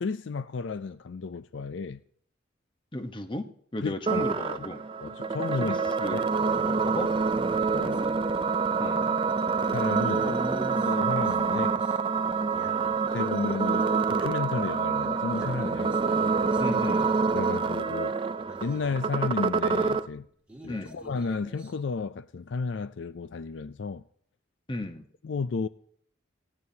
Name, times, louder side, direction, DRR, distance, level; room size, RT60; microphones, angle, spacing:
voice 1, 0.0-2.0 3.8-4.7 5.0-6.3 6.9-7.0 7.7-8.0 9.7-10.4 10.8-11.8 13.1-16.0 17.3-18.1 18.6-20.3 20.6-24.0 25.2-25.7, left 4 dB, 65° left, 0.4 m, -33 dB
voice 2, 2.9-3.5 3.7-4.8 5.6-6.3 6.6-7.1 8.8-9.1 10.2-10.9 16.6-17.1 20.7-21.0 24.7-25.1, left 1 dB, 25° left, 1.0 m, -35 dB
sound 1, 4.1-20.1, right 4 dB, 25° right, 0.4 m, -27 dB
sound 2, 7.5-8.5 9.0-9.2 10.0-13.3 13.6-13.7 14.0-14.1 14.4-14.7 14.9-17.6 18.1-18.2 18.4-19.1 19.6-21.7, right 1 dB, 5° right, 2.2 m, -47 dB
19.0 x 15.5 x 2.8 m
head